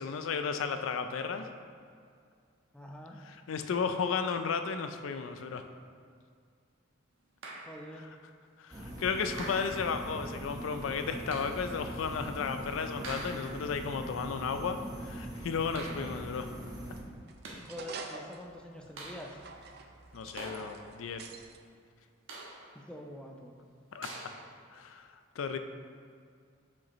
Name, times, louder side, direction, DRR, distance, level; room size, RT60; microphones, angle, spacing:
voice 1, 0.0-1.5 3.2-5.6 7.9-8.2 8.6-16.5 20.1-21.2 23.9-24.1 24.7-25.1 25.4-25.6, left 5 dB, 75° left, 8 dB, 0.4 m, -34 dB
voice 2, 2.7-3.2 7.7-8.1 15.9-16.3 17.6-19.3 22.8-23.6, equal, 5° left, 1 dB, 0.4 m, -46 dB
sound 1, 7.4-8.0 9.4-10.1 11.3-11.7 13.0-13.8 15.7-16.4 17.2-17.8 19.0-19.6 20.4-21.1 22.3-22.9 24.0-24.6, right 2 dB, 75° right, 1.1 m, -45 dB
sound 2, 8.7-17.0, right 1 dB, 20° right, 0.9 m, -42 dB
sound 3, 16.5-21.6, right 4 dB, 50° right, 0.4 m, -48 dB
7.1 x 5.1 x 3.0 m, 2.2 s
head